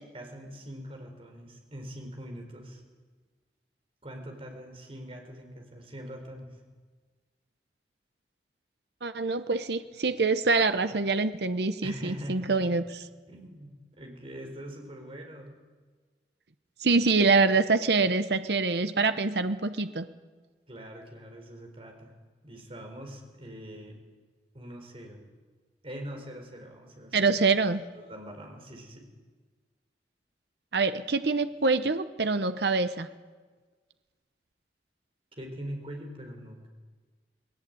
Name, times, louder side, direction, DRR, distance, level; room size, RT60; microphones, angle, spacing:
voice 1, 0.1-2.8 4.0-6.5 11.8-12.8 13.3-15.6 20.7-22.1 22.4-24.0 24.5-25.2 25.8-27.3 27.9-29.1 35.4-36.7, equal, 30° right, 3 dB, 4.5 m, -43 dB
voice 2, 9.0-13.0 16.8-20.1 27.1-27.8 30.7-33.1, right 4 dB, 65° right, 10 dB, 0.9 m, -25 dB
19.5 x 18.0 x 9.5 m, 1.4 s
head